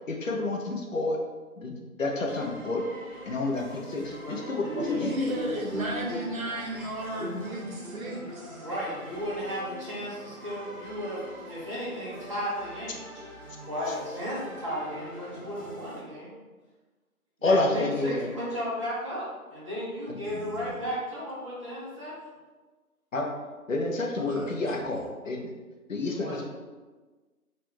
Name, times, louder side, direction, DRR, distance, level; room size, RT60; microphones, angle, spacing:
voice 1, 0.1-1.2 1.6-2.9 3.3-5.2 17.4-18.3 20.1-20.2 23.1-23.3 23.7-25.5 25.9-26.4, left 2 dB, 60° left, 1 dB, 0.7 m, -29 dB
sound 1, 2.3-16.0, equal, 10° left, 0.8 m, -45 dB
voice 2, 4.2-6.2 7.1-7.3 8.6-13.0 13.6-16.3 17.4-22.2 26.1-26.4, equal, 20° right, -10 dB, 0.8 m, -35 dB
voice 3, 4.8-8.7 20.2-20.9 24.2-25.0, equal, 65° right, -1 dB, 0.9 m, -34 dB
3.4 x 2.5 x 3.1 m, 1.3 s
figure-of-eight pair, 155°, 44 cm